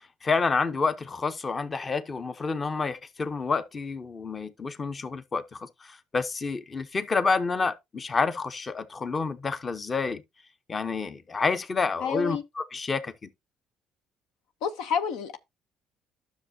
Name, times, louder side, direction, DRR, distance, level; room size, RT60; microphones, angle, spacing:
voice 1, 0.2-10.2 10.7-13.3, left 4 dB, 30° left, 0.8 m, -29 dB
voice 2, 12.0-12.4 14.6-15.4, left 7 dB, 85° left, 0.8 m, -29 dB
10.5 x 6.3 x 2.7 m
cardioid pair, 90°, 0 cm